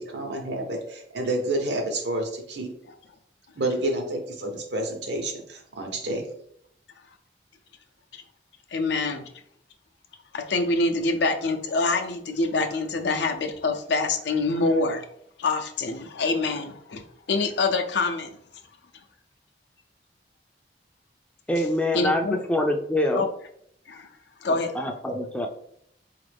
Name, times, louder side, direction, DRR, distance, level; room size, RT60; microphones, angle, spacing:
voice 1, 0.0-2.7 3.6-6.2, right 1 dB, 85° right, 2 dB, 0.9 m, -29 dB
voice 2, 8.7-9.2 10.3-15.0 15.4-17.0 17.3-18.3 21.9-22.4 23.1-23.3 23.9-24.1 24.4-24.7, left 3 dB, 80° left, 5 dB, 0.5 m, -25 dB
voice 3, 21.5-23.3 24.5-25.5, left 1 dB, 5° left, 3 dB, 0.3 m, -25 dB
4.0 x 2.5 x 3.3 m, 0.70 s
head